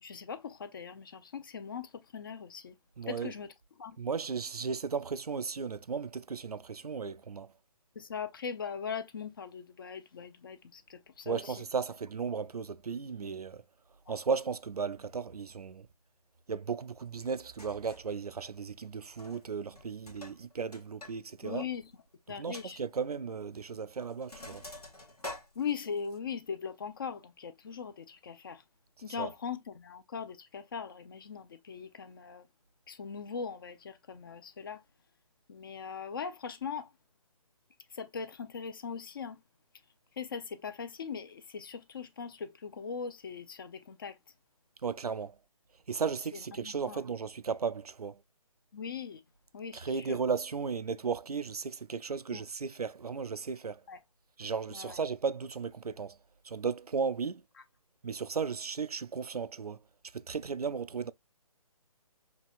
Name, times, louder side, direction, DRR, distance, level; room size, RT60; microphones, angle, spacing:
voice 1, 0.0-2.8 3.1-3.5 3.8-4.0 8.0-11.5 14.1-14.2 21.4-21.8 22.3-22.8 25.6-28.6 29.0-32.5 32.9-34.8 35.5-36.9 37.9-39.4 40.2-44.2 46.6-47.0 48.7-49.2 49.5-50.2 52.3-52.4 53.9-54.0 54.7-55.0, left 6 dB, 35° left, 0.5 m, -40 dB
voice 2, 3.0-3.3 4.0-7.5 11.2-13.6 14.1-15.9 16.5-21.7 22.3-24.7 29.2-29.3 44.8-45.4 45.9-48.2 49.7-53.8 54.4-56.2 56.4-57.4 58.0-59.8 60.1-61.1, right 5 dB, 85° right, 0.4 m, -35 dB
Sink (filling or washing), 17.2-17.3 17.6-18.1 19.1-19.5 19.7-21.2 21.5-21.6 22.0-22.1 22.5-22.7 23.5-23.7 24.0-26.2, left 1 dB, 85° left, 1.2 m, -47 dB
5.7 x 2.8 x 2.4 m
figure-of-eight pair, 145°, 19 cm